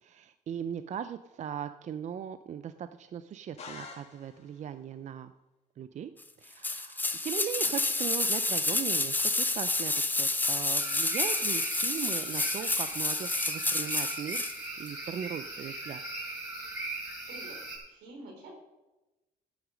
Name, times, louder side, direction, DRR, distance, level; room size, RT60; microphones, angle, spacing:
voice 1, 0.0-5.3 5.8-6.1 6.4-16.0, right 9 dB, 45° right, 11 dB, 0.6 m, -39 dB
sound 1, 3.6-4.7, left 5 dB, 40° left, 2.4 m, -46 dB
sound 2, 6.6-14.6 14.9-15.0, left 2 dB, 10° left, 0.8 m, -29 dB
sound 3, 10.8-17.8, right 2 dB, 15° right, 5.3 m, -39 dB
voice 2, 17.8-18.5, right 2 dB, 85° right, 2 dB, 3.9 m, -47 dB
13.0 x 9.4 x 5.2 m, 1.0 s
cardioid pair, 110°, 17 cm